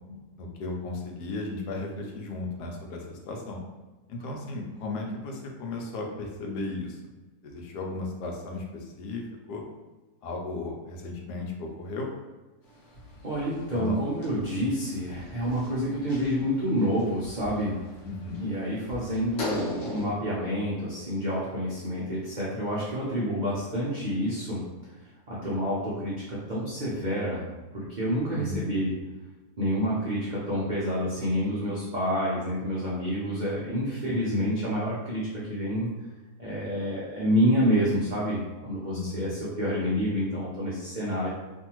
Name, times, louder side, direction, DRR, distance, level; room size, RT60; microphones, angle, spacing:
voice 1, 0.4-3.6 4.1-7.2 7.4-9.6 10.2-12.1 13.7-14.0 18.0-18.4 28.3-28.7 34.1-34.5 38.9-39.4, left 2 dB, 80° left, 1 dB, 1.1 m, -35 dB
sound 1, 12.7-20.1, left 1 dB, 50° left, 0.9 m, -39 dB
voice 2, 13.2-17.8 18.4-24.6 25.3-27.4 27.7-28.9 29.6-35.9 36.4-41.3, equal, 80° right, -8 dB, 0.4 m, -28 dB
2.6 x 2.6 x 2.9 m, 1.2 s
omnidirectional pair, 1.7 m